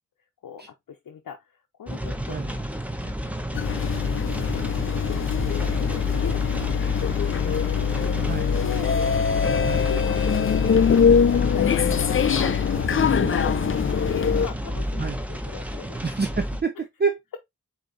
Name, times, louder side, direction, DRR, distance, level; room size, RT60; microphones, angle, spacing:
voice 1, 0.4-2.6 3.0-3.2 3.5-8.3 8.6-9.0 9.9-12.6 12.9-16.0, left 7 dB, 85° left, 0.7 m, -39 dB
sound 1, 1.9-16.6, equal, 5° right, 0.9 m, -32 dB
sound 2, 3.5-14.5, left 7 dB, 40° left, 0.4 m, -22 dB
voice 2, 8.2-8.5 9.5-9.9 13.2-13.4 15.0-15.2 16.0-17.2, right 5 dB, 30° right, 0.6 m, -28 dB
4.8 x 2.8 x 3.8 m
cardioid pair, 45°, 33 cm